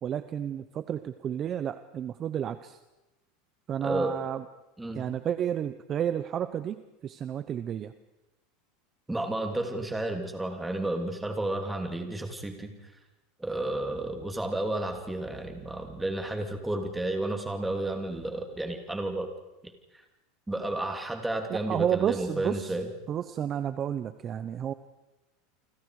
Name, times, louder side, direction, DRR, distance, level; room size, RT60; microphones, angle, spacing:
voice 1, 0.0-2.8 3.7-4.4 4.9-7.9 21.5-22.8 23.1-24.7, right 9 dB, 30° right, 12 dB, 0.8 m, -31 dB
voice 2, 3.8-4.1 4.8-5.0 9.1-12.7 13.4-19.3 20.5-22.9, right 1 dB, 5° right, 4 dB, 3.0 m, -32 dB
29.5 x 25.0 x 5.0 m, 1.0 s
supercardioid pair, 150°, 0 cm